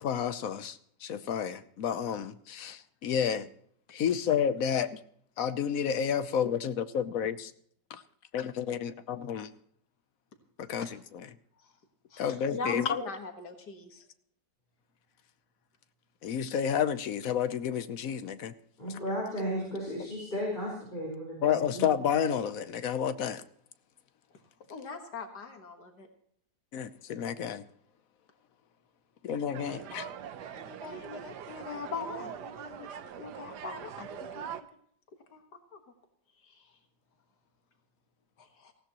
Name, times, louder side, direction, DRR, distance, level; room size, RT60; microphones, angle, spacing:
voice 1, 0.0-3.5 3.9-5.0 5.4-7.5 7.9-8.0 8.3-9.5 10.6-11.3 12.2-12.9 16.2-18.5 21.4-23.4 26.7-27.6 29.2-30.1, left 8 dB, 60° left, 13 dB, 1.1 m, -30 dB
voice 2, 12.1-14.0 24.7-26.1 30.6-34.5 35.3-35.4 35.7-35.8 36.5-36.6 38.4-38.7, left 4 dB, 85° left, 4 dB, 2.2 m, -41 dB
voice 3, 18.8-21.9, equal, 30° left, -4 dB, 4.7 m, -34 dB
sound 1, 29.5-34.6, right 8 dB, 90° right, 1.5 m, -42 dB
18.5 x 16.0 x 3.0 m, 0.65 s
omnidirectional pair, 1.7 m